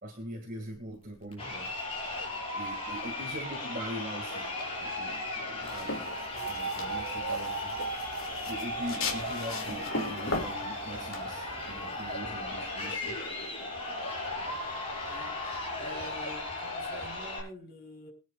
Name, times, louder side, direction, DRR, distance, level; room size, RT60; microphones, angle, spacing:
voice 1, 0.0-1.7 2.5-4.5 4.8-7.8 8.4-13.2, equal, 40° right, 2.3 m, -42 dB
Crowd, 1.3-17.4, left 2 dB, 25° left, 6.0 m, -36 dB
voice 2, 5.4-6.6 15.0-15.5 15.8-18.1, left 1 dB, 45° left, 4.5 m, -49 dB
sound 1, 5.6-12.1, left 3 dB, 70° left, 2.7 m, -38 dB
sound 2, 6.2-13.6, right 6 dB, 85° right, 1.9 m, -41 dB
24.0 x 9.7 x 2.5 m
head